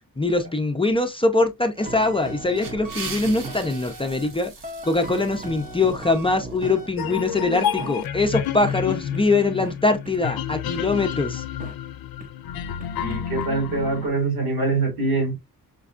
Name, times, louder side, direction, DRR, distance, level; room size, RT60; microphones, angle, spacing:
voice 1, 0.2-4.5 4.8-11.4, left 3 dB, 15° left, 0.5 m, -23 dB
sound 1, 1.8-4.3 4.6-7.4 7.8-7.9 8.2-8.3 8.7-9.2 9.6-9.7 10.0-10.1 10.5-11.1 11.6-11.7 12.2-12.3 12.8-13.5, right 2 dB, 25° right, 0.6 m, -38 dB
sound 2, 2.2-6.8, right 4 dB, 65° right, 1.3 m, -40 dB
sound 3, 7.0-14.1, left 9 dB, 75° left, 0.5 m, -30 dB
voice 2, 13.0-15.4, right 3 dB, 85° right, 2.3 m, -24 dB
5.1 x 2.3 x 2.4 m
wide cardioid pair, 115°, 36 cm